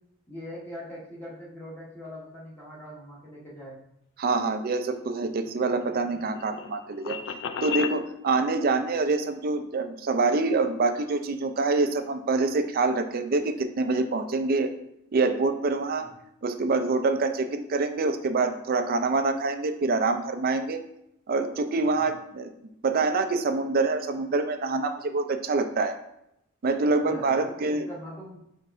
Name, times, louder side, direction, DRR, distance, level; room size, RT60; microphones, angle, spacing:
voice 1, 0.3-3.7 15.9-16.1 21.8-22.0 26.8-28.4, equal, 10° left, -6 dB, 1.0 m, -42 dB
voice 2, 4.2-7.2 7.6-14.7 15.1-16.0 16.4-20.8 21.3-22.5 22.8-26.0 26.6-27.9, right 3 dB, 45° right, 8 dB, 0.4 m, -26 dB
sound 1, 4.9-8.0, left 7 dB, 55° left, 0.3 m, -35 dB
5.4 x 3.3 x 2.5 m, 0.78 s
head